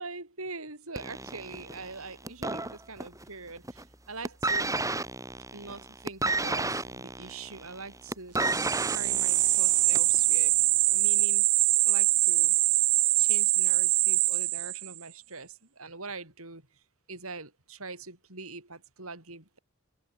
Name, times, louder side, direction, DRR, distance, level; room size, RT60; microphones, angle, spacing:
voice 1, 0.0-4.8 5.5-8.4 8.9-10.6 10.9-11.5 11.8-12.6 13.2-16.6 17.1-19.6, right 3 dB, 70° right, 7.8 m, -43 dB
sound 1, 1.0-3.3 3.6-3.9 4.2-10.2 11.0-11.1, right 2 dB, 15° right, 4.7 m, -32 dB
sound 2, 8.4-15.0, right 20 dB, 85° right, 0.8 m, -24 dB
head